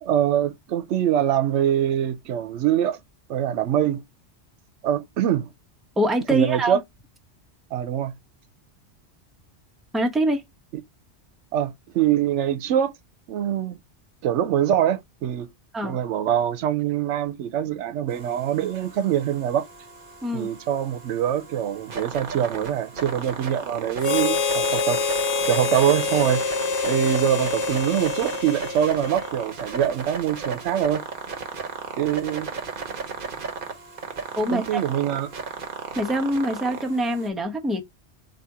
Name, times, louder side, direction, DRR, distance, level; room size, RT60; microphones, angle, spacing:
voice 1, 0.0-3.0 3.3-4.0 4.8-5.5 6.3-6.8 7.7-8.1 11.5-12.9 13.3-13.8 14.2-15.5 15.8-19.7 20.3-26.4 26.8-31.0 32.0-32.5 34.5-35.3, right 10 dB, 80° right, 0.9 m, -24 dB
voice 2, 6.0-6.8 9.9-10.4 15.7-16.0 20.2-20.5 34.4-34.8 36.0-37.8, right 1 dB, ahead, 0.7 m, -24 dB
sound 1, 18.1-37.3, right 5 dB, 50° right, 1.0 m, -35 dB
Harmonica, 24.0-29.5, left 4 dB, 75° left, 0.9 m, -26 dB
4.1 x 2.7 x 4.6 m
omnidirectional pair, 1.2 m